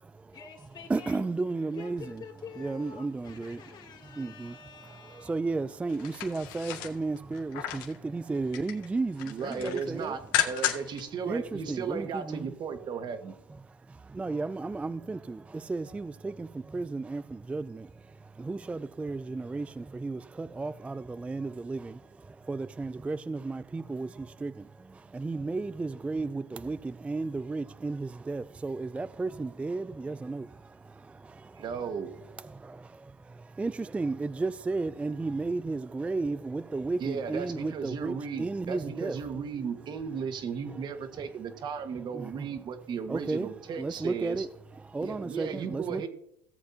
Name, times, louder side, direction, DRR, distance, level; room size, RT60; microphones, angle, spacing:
voice 1, 0.3-1.3 1.7-5.4, left 7 dB, 40° left, 2.8 m, -47 dB
voice 2, 0.9-2.2 2.6-3.6 4.2-4.6 5.1-9.6 11.3-12.5 14.1-17.9 18.4-22.0 22.2-30.5 31.1-31.6 32.5-33.0 33.4-38.1 38.4-39.2 42.1-42.3 43.1-43.5 43.8-44.5 44.9-46.1, right 3 dB, 10° right, 0.3 m, -33 dB
sound 1, 5.9-8.0 8.4-8.9 9.2-11.0 11.4-11.5, left 11 dB, 75° left, 2.0 m, -33 dB
voice 3, 9.2-10.2 10.4-13.3 31.6-32.1 37.0-44.5 45.0-46.1, right 6 dB, 40° right, 1.5 m, -35 dB
17.5 x 7.8 x 2.8 m
supercardioid pair, 90°, 11 cm